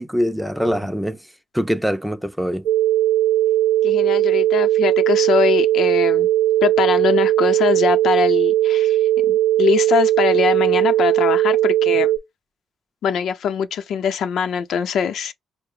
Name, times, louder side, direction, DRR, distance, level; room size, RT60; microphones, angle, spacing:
voice 1, 0.0-2.7, equal, 5° right, 0.4 m, -24 dB
sound 1, 2.7-12.2, right 14 dB, 85° right, 0.4 m, -18 dB
voice 2, 3.8-6.3 6.6-9.0 9.3-12.1 13.0-15.3, left 7 dB, 70° left, 0.7 m, -22 dB
4.6 x 2.1 x 3.4 m
cardioid pair, 90°, 0 cm